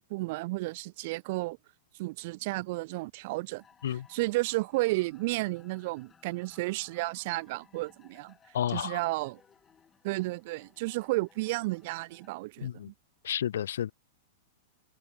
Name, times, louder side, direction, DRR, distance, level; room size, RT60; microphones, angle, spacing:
voice 1, 0.0-1.6 2.0-3.6 4.1-8.3 8.7-9.4 10.0-12.7, right 22 dB, 50° right, 1.0 m, -32 dB
sound 1, 3.6-12.3, left 6 dB, 15° left, 5.5 m, -62 dB
voice 2, 8.5-9.0 12.6-12.9 13.2-13.9, left 10 dB, 85° left, 0.4 m, -31 dB
supercardioid pair, 150°, 0 cm